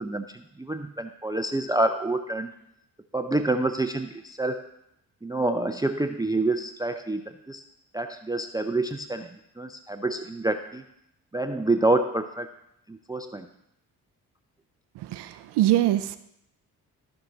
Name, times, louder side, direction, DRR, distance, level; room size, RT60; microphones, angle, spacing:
voice 1, 0.0-2.5 3.1-4.7 5.2-7.6 7.9-10.8 11.3-12.5 12.9-13.5, right 2 dB, 10° right, 8 dB, 0.5 m, -27 dB
voice 2, 15.0-16.2, right 14 dB, 75° right, 12 dB, 0.6 m, -23 dB
14.0 x 4.7 x 3.9 m, 0.78 s
supercardioid pair, 50°, 41 cm